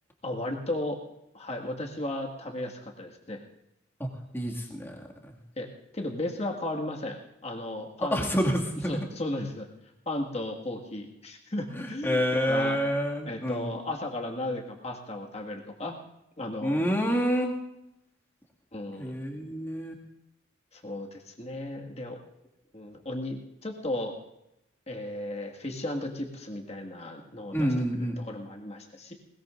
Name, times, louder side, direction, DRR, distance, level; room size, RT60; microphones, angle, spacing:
voice 1, 0.2-1.0 1.3-3.4 5.6-8.3 8.8-9.7 10.1-12.8 13.3-16.0 16.4-16.9 18.7-19.1 20.7-22.2 22.7-24.1 24.9-29.1, left 1 dB, 35° left, 1 dB, 1.9 m, -35 dB
voice 2, 4.3-5.0 5.3-5.4 8.1-8.9 11.8-13.7 16.6-17.6 19.0-19.9 27.5-28.2, equal, 10° left, -2 dB, 2.1 m, -28 dB
20.5 x 20.0 x 2.6 m, 0.85 s
head